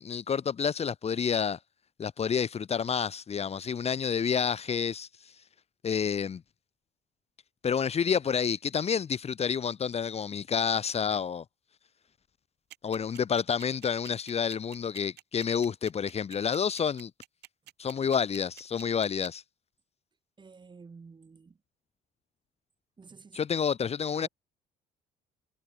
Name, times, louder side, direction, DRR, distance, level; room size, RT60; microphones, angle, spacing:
voice 1, 0.0-1.6 2.0-5.1 5.8-6.4 7.6-11.4 12.8-17.1 17.8-19.4 23.3-24.3, left 7 dB, 40° left, 2.4 m, -29 dB
sound 1, 12.7-19.3, right 16 dB, 80° right, 7.3 m, -49 dB
voice 2, 20.4-21.6 23.0-23.4 24.1-24.3, right 4 dB, 25° right, 7.7 m, -50 dB
cardioid pair, 110°, 17 cm